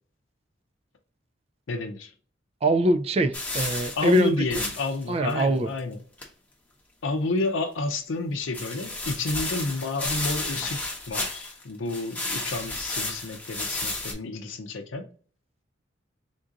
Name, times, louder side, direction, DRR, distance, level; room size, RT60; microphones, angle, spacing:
voice 1, 1.7-2.1 4.0-6.0 7.0-10.8 11.1-15.1, left 3 dB, 85° left, 0.6 m, -30 dB
voice 2, 2.6-4.4 5.1-5.7, right 1 dB, 30° right, 0.3 m, -23 dB
sound 1, 3.3-5.0 5.3-5.4 5.8-5.9 6.2-6.3 8.5-11.6 11.9-14.1, left 2 dB, 10° left, 0.8 m, -32 dB
3.7 x 2.5 x 3.8 m
head